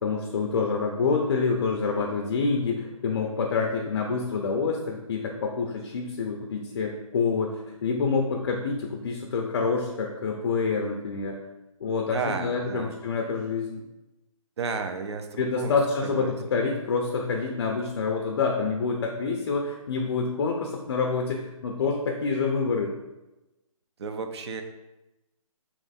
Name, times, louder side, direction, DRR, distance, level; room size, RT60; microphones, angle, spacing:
voice 1, 0.0-11.4 11.8-13.8 15.4-22.9, left 4 dB, 40° left, 2 dB, 0.4 m, -27 dB
voice 2, 12.1-13.0 14.6-15.8 16.0-16.3 24.0-24.6, right 5 dB, 50° right, 6 dB, 0.5 m, -32 dB
3.3 x 3.0 x 4.0 m, 1.0 s
hypercardioid pair, 160°, 18 cm